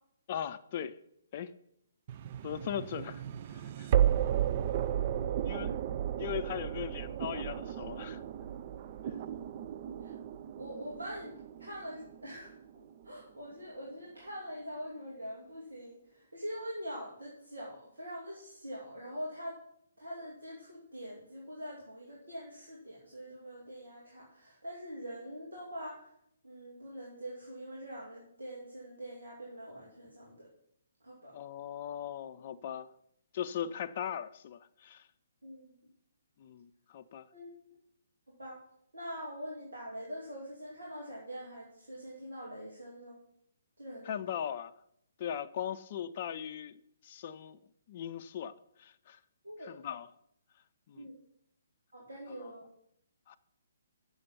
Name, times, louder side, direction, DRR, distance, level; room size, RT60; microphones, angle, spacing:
voice 1, 0.3-1.0 1.3-1.5 2.4-3.2 3.5-3.9 5.4-5.8 6.2-8.2 9.1-9.2 31.3-32.9 33.3-35.1 36.4-37.3 44.0-44.7 45.2-47.6 47.9-49.2 49.6-50.1 50.9-51.1 52.3-52.6 53.3-53.4, left 9 dB, 40° left, 0.5 m, -39 dB
sound 1, 2.1-13.1, right 10 dB, 40° right, 0.4 m, -34 dB
voice 2, 5.1-5.6 10.0-10.1 10.6-11.3 11.6-12.5 13.0-19.6 20.0-26.0 26.4-30.5 31.0-31.3 35.4-35.8 37.3-37.5 38.3-38.6 38.9-43.2 43.8-44.2 49.4-49.7 50.9-51.1 51.9-52.6, equal, 80° right, 2.4 m, -44 dB
6.6 x 6.4 x 7.1 m
figure-of-eight pair, 135°, 0 cm